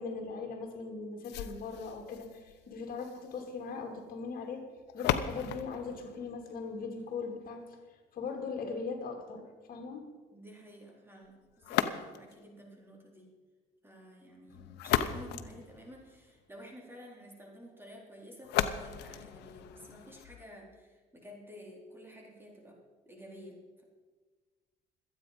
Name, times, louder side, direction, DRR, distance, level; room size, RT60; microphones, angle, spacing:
voice 1, 0.0-4.6 4.9-7.8 8.1-10.0, left 4 dB, 60° left, 3 dB, 2.6 m, -39 dB
sound 1, 1.2-7.2 11.6-12.5 14.5-16.4 18.4-20.4, left 11 dB, 85° left, 0.9 m, -36 dB
voice 2, 10.3-13.3 13.8-22.8 23.1-23.8, equal, 15° right, -1 dB, 4.2 m, -51 dB
25.5 x 9.1 x 5.2 m, 1.4 s
cardioid pair, 110°, 17 cm